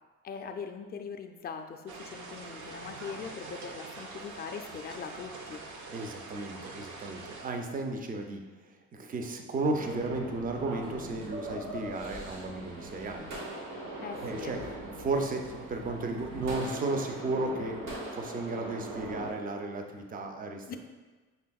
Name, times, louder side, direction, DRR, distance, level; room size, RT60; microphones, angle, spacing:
voice 1, 0.2-5.6 14.0-14.5 20.7-20.8, left 6 dB, 35° left, 5 dB, 0.4 m, -41 dB
sound 1, 1.9-7.5, right 3 dB, 70° right, 0.6 m, -44 dB
voice 2, 5.9-8.4 8.9-13.3 14.2-14.6 15.0-17.8 18.1-20.8, right 2 dB, 30° right, 4 dB, 0.5 m, -34 dB
sound 2, 9.7-19.3, right 1 dB, 90° right, 1.0 m, -40 dB
5.4 x 3.4 x 2.3 m, 1.3 s
cardioid pair, 90°, 30 cm